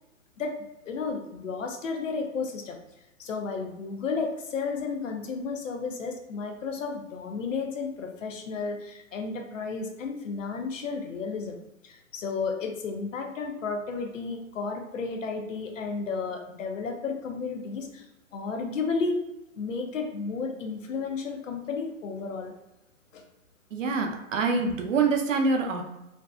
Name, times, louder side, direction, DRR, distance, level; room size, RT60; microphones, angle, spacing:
voice 1, 0.8-2.8 3.2-11.6 11.8-18.1 18.3-19.2 19.6-22.5 23.1-23.2, left 4 dB, 65° left, 3 dB, 0.6 m, -32 dB
voice 2, 23.7-25.8, right 4 dB, 65° right, 3 dB, 0.5 m, -25 dB
2.5 x 2.2 x 2.2 m, 0.93 s
hypercardioid pair, 135°, 42 cm